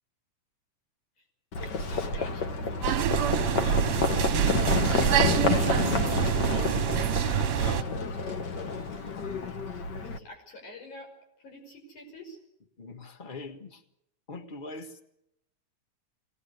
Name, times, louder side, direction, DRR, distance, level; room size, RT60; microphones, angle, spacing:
Livestock farm animals working animals, 1.5-10.2, left 4 dB, 55° left, 1.2 m, -29 dB
voice 1, 1.6-3.0 5.7-6.7 10.0-11.1 11.4-12.4, left 1 dB, 75° left, 2 dB, 7.2 m, -46 dB
sound 1, 2.8-7.8, right 10 dB, 65° right, 1.5 m, -26 dB
voice 2, 12.8-13.8 14.3-15.0, left 3 dB, 25° left, 6 dB, 1.1 m, -41 dB
24.5 x 19.0 x 8.1 m, 0.81 s
omnidirectional pair, 3.5 m